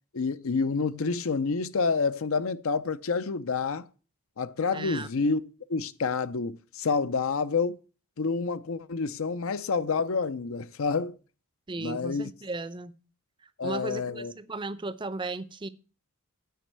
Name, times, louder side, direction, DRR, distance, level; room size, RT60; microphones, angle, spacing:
voice 1, 0.1-3.9 4.4-5.4 5.7-7.8 8.2-11.2 11.8-12.3 13.6-14.3, left 4 dB, 65° left, 0.6 m, -28 dB
voice 2, 4.7-5.1 11.7-12.9 13.6-15.7, right 3 dB, 20° right, 0.6 m, -35 dB
9.3 x 5.3 x 7.9 m
head